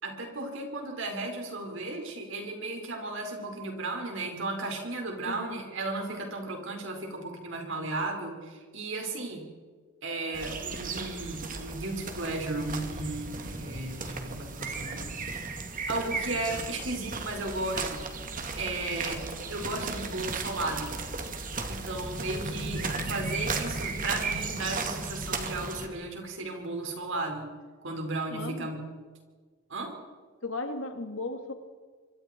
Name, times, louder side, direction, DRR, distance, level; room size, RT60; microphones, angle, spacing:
voice 1, 0.0-9.4 10.0-15.4 15.9-18.1 18.6-19.2 19.5-20.9 21.7-27.5 27.8-28.8 29.7-29.9, right 2 dB, 65° right, 3 dB, 5.1 m, -35 dB
voice 2, 5.2-5.6 28.3-28.7 30.4-31.5, left 2 dB, 70° left, 6 dB, 2.5 m, -36 dB
sound 1, 10.3-25.9, right 3 dB, 40° right, 2.4 m, -35 dB
25.5 x 25.5 x 4.6 m, 1.5 s
head